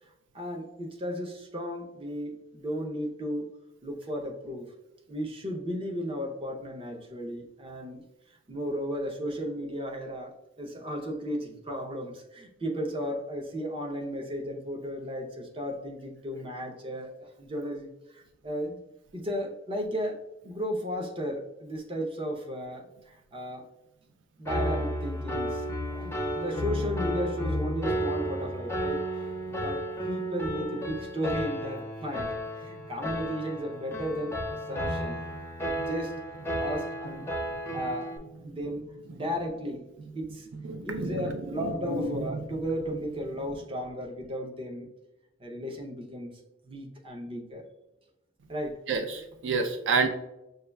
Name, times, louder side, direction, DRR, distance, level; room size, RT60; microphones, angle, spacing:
voice 1, 0.3-3.5 3.8-4.7 5.1-8.0 8.5-17.1 17.4-18.8 19.1-22.9 23.3-23.6 24.4-29.1 29.5-34.4 34.7-35.2 35.6-36.1 36.6-37.3 37.7-38.1 38.4-38.9 39.1-39.8 40.1-40.5 40.8-44.9 45.4-46.4 46.6-47.6 48.5-48.8, equal, 30° right, 1 dB, 0.6 m, -34 dB
Piano, 24.4-38.2, equal, 15° left, 0.4 m, -33 dB
voice 2, 40.6-42.3 48.9-50.1, right 4 dB, 75° right, 6 dB, 0.4 m, -29 dB
6.3 x 2.3 x 2.2 m, 0.94 s
head